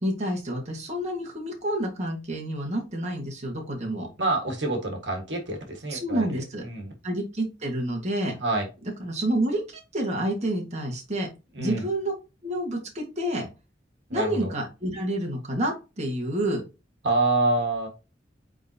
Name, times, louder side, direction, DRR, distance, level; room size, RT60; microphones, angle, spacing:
voice 1, 0.0-4.1 5.9-6.6 7.0-8.3 9.0-9.6 9.9-11.3 11.6-12.1 12.4-13.5 14.1-16.6, right 1 dB, 40° right, 0 dB, 1.7 m, -28 dB
voice 2, 4.2-6.9 8.4-8.7 11.5-11.9 14.1-14.5 17.0-17.9, right 2 dB, 70° right, 2 dB, 1.7 m, -27 dB
8.8 x 3.8 x 2.8 m, 0.29 s
head